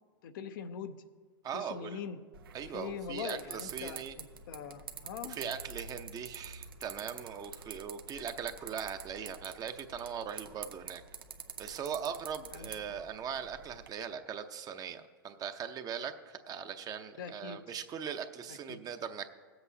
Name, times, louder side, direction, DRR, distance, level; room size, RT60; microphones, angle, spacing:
voice 1, 0.2-1.0 1.5-2.2 2.7-5.4 12.5-13.0 17.2-17.8 18.5-18.8, left 7 dB, 70° left, 9 dB, 0.7 m, -42 dB
voice 2, 1.4-2.0 2.5-4.1 5.3-11.0 11.6-19.3, right 7 dB, 30° right, 8 dB, 0.7 m, -40 dB
sound 1, 2.3-13.9, right 6 dB, 85° right, 0.7 m, -47 dB
19.0 x 7.9 x 2.8 m, 1.5 s
hypercardioid pair, 100°, 12 cm